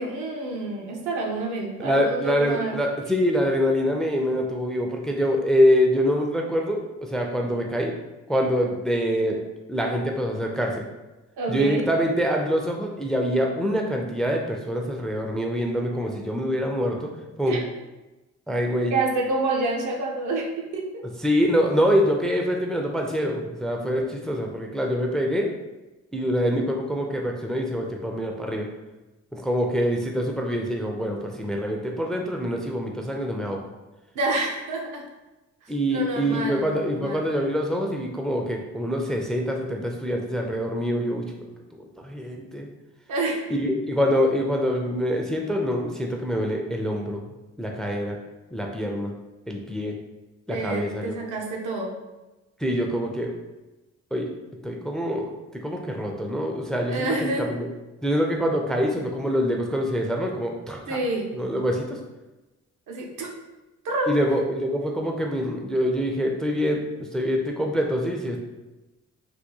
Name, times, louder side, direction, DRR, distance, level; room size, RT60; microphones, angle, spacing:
voice 1, 0.0-2.8 11.4-11.9 17.5-17.6 18.9-21.0 34.1-35.0 35.6-37.2 43.1-43.4 50.5-51.9 56.9-57.5 60.9-61.3 62.9-63.3 63.8-64.2, right 2 dB, 75° right, 0 dB, 0.8 m, -28 dB
voice 2, 1.8-7.9 8.3-9.4 9.7-10.8 11.5-17.1 17.4-17.6 18.5-18.9 21.2-25.5 26.1-28.7 29.3-33.6 35.7-41.2 42.0-42.7 43.5-47.2 47.6-48.2 48.5-49.1 49.5-49.9 50.5-51.1 52.6-53.3 54.1-54.3 54.6-55.3 55.6-57.7 58.0-61.0 61.3-62.0 64.1-66.8 67.1-68.4, equal, ahead, 1 dB, 0.3 m, -25 dB
3.4 x 2.2 x 2.9 m, 1.1 s
cardioid pair, 90°, 30 cm